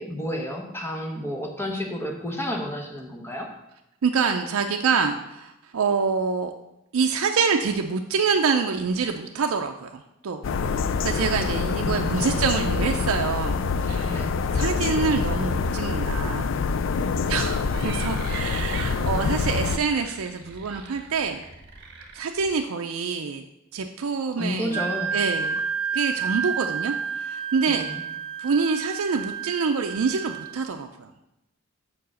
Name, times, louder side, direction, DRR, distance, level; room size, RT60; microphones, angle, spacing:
voice 1, 0.0-3.5 11.8-12.6 14.1-14.3 24.4-25.1 27.7-28.0, equal, 10° left, 1 dB, 1.0 m, -31 dB
voice 2, 4.0-6.5 6.9-10.4 11.0-14.3 14.5-16.6 17.3-21.4 22.1-23.4 23.7-24.8 25.1-25.6 25.9-27.8 28.4-31.1, right 5 dB, 90° right, 5 dB, 0.5 m, -26 dB
sound 1, 10.4-19.8, left 4 dB, 60° left, 0.3 m, -25 dB
sound 2, 17.5-22.6, right 4 dB, 50° right, 1.2 m, -42 dB
Wind instrument woodwind instrument, 24.7-30.5, right 6 dB, 25° right, 0.4 m, -30 dB
6.0 x 4.7 x 6.2 m, 0.88 s
head